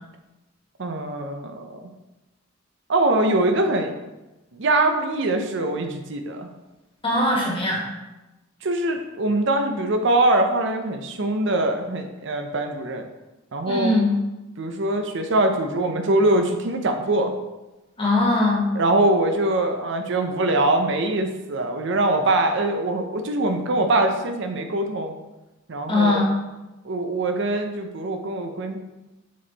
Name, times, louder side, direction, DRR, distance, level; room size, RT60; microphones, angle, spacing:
voice 1, 0.8-1.9 2.9-3.9 4.5-6.5 8.6-13.1 13.5-13.9 14.6-17.3 18.8-25.1 25.7-26.2 26.8-28.8, right 2 dB, 65° right, 5 dB, 0.6 m, -23 dB
voice 2, 7.0-7.8 13.7-14.1 18.0-18.7 25.9-26.3, left 2 dB, 25° left, -3 dB, 1.6 m, -20 dB
6.2 x 4.3 x 4.0 m, 1.0 s
head